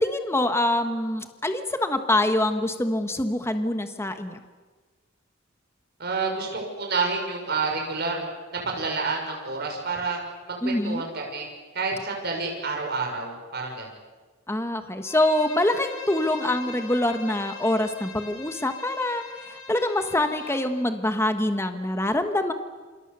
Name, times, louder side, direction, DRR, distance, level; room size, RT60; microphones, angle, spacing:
voice 1, 0.0-4.4 10.6-11.0 14.5-22.5, left 1 dB, 15° left, 7 dB, 1.3 m, -25 dB
voice 2, 6.0-8.2 8.7-10.2 10.5-11.5 11.7-13.9, right 4 dB, 55° right, 1 dB, 6.1 m, -29 dB
Bowed string instrument, 15.0-20.7, left 4 dB, 85° left, 7.0 m, -41 dB
28.0 x 26.0 x 6.9 m, 1.4 s
head